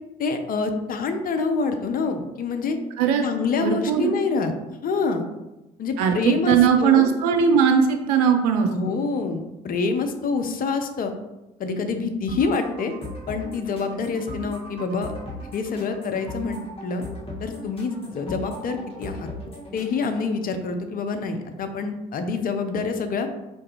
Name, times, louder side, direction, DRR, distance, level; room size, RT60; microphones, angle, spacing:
voice 1, 0.2-2.8 3.2-4.5 4.8-5.2 5.8-7.1 8.7-11.1 11.6-12.9 13.3-15.1 15.5-17.0 17.4-19.3 19.7-23.3, left 4 dB, 45° left, 7 dB, 0.6 m, -26 dB
voice 2, 3.6-4.1 6.0-9.0, right 7 dB, 80° right, 4 dB, 0.4 m, -19 dB
sound 1, 12.3-20.3, equal, 30° left, 1.5 m, -38 dB
4.5 x 2.5 x 2.9 m, 1.0 s
hypercardioid pair, 50°, 20 cm